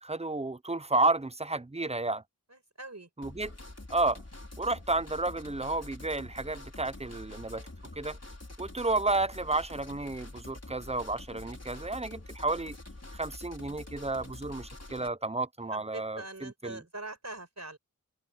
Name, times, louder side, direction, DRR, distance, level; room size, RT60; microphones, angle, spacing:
voice 1, 0.0-2.2 3.2-3.5 3.9-4.2 4.6-7.7 8.0-8.2 8.6-12.8 13.1-16.8, right 2 dB, 20° right, 0.7 m, -31 dB
voice 2, 2.5-3.1 15.7-17.8, right 2 dB, 50° right, 5.2 m, -43 dB
sound 1, 3.2-15.1, left 2 dB, 45° left, 4.3 m, -46 dB
wide cardioid pair, 45°, 34 cm